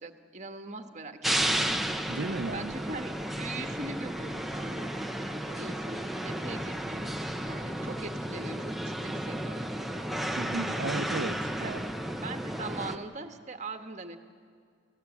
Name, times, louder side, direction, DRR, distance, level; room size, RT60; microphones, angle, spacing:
voice 1, 0.0-1.7 2.5-4.9 5.5-7.2 7.5-10.1 11.6-11.7 12.2-14.2, right 3 dB, 40° right, 6 dB, 1.4 m, -41 dB
sound 1, 1.2-13.0, right 1 dB, ahead, 0.8 m, -33 dB
voice 2, 2.1-2.7 10.4-11.8, right 3 dB, 70° right, 12 dB, 0.8 m, -34 dB
28.5 x 15.5 x 8.5 m, 2.1 s
head